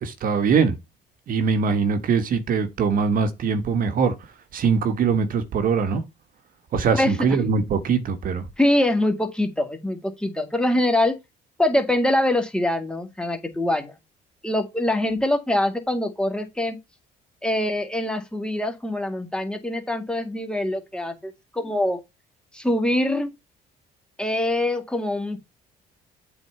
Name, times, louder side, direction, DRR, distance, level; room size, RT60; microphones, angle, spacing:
voice 1, 0.0-0.8 1.3-4.1 4.5-6.0 6.7-8.4, right 5 dB, 55° right, 1.4 m, -22 dB
voice 2, 8.6-11.2 11.6-13.9 14.4-16.8 17.4-22.0 22.5-23.3 24.2-25.4, left 1 dB, 5° left, 2.0 m, -24 dB
7.9 x 4.2 x 5.7 m
cardioid pair, 110°, 17 cm